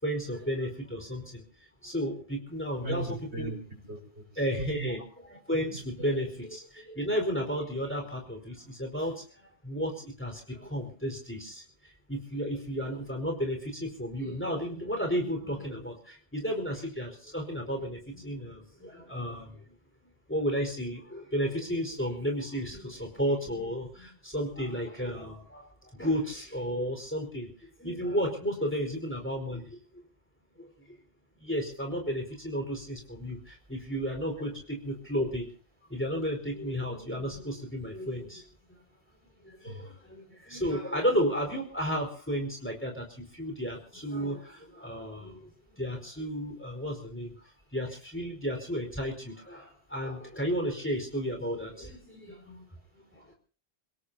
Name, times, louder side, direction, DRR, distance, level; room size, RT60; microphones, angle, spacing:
voice 1, 0.0-1.4 1.8-3.6 4.4-11.6 12.1-19.6 20.3-27.5 27.8-29.8 30.6-31.0 31.4-35.5 35.9-38.4 39.4-47.3 47.7-52.6 52.9-53.3, equal, 10° left, 3 dB, 4.6 m, -33 dB
voice 2, 2.8-4.3 4.6-4.9 5.7-5.8 34.4-34.5 39.7-39.9, right 2 dB, 85° right, 1 dB, 5.6 m, -38 dB
29.0 x 17.5 x 2.8 m, 0.40 s
omnidirectional pair, 1.1 m